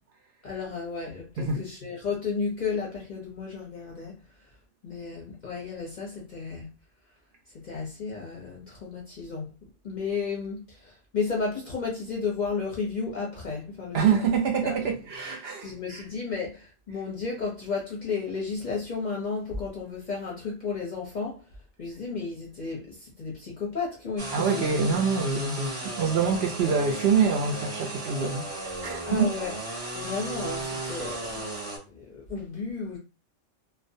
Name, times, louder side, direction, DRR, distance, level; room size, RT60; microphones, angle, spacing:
voice 1, 0.4-4.2 4.8-6.7 7.6-9.5 9.8-14.2 14.6-14.8 15.6-21.4 21.8-24.9 29.1-29.5 29.9-31.4 31.9-33.0, left 5 dB, 50° left, 0.6 m, -33 dB
voice 2, 13.9-16.0 24.3-29.3, right 6 dB, 65° right, 0.7 m, -26 dB
sound 1, 24.2-31.8, right 2 dB, 35° right, 0.7 m, -35 dB
2.4 x 2.1 x 2.6 m
omnidirectional pair, 1.3 m